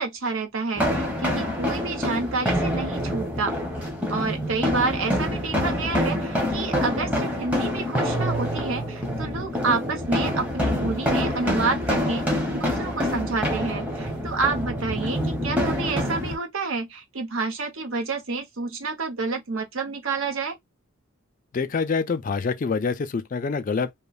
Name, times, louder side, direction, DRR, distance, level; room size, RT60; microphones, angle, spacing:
voice 1, 0.0-3.5 4.1-12.3 12.5-20.6, right 4 dB, 75° right, 0.9 m, -29 dB
sound 1, 0.8-16.4, equal, 5° right, 0.7 m, -26 dB
voice 2, 21.5-24.0, left 5 dB, 40° left, 0.3 m, -26 dB
3.0 x 2.1 x 2.3 m
head